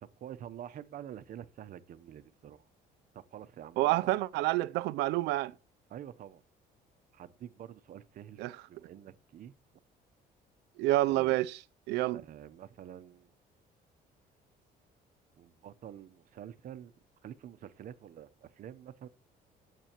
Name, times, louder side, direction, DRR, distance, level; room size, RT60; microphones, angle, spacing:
voice 1, 0.0-2.6 3.1-4.2 5.9-6.4 7.1-9.5 11.1-11.4 12.1-13.3 15.4-16.9 17.2-19.1, right 10 dB, 55° right, 0.8 m, -47 dB
voice 2, 3.8-5.5 8.4-8.5 10.8-11.6 11.9-12.2, right 17 dB, 85° right, 0.5 m, -28 dB
18.5 x 7.6 x 3.0 m
cardioid pair, 110°, 17 cm